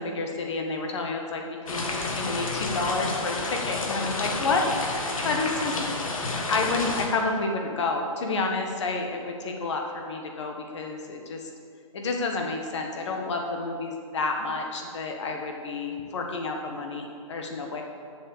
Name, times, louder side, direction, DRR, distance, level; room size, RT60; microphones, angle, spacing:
voice 1, 0.0-5.7 6.3-11.5 11.9-17.8, left 3 dB, 55° left, 2 dB, 1.5 m, -30 dB
sound 1, 1.7-7.1, left 3 dB, 70° left, 1.7 m, -30 dB
7.5 x 7.1 x 6.7 m, 2.3 s
hypercardioid pair, 155°, 18 cm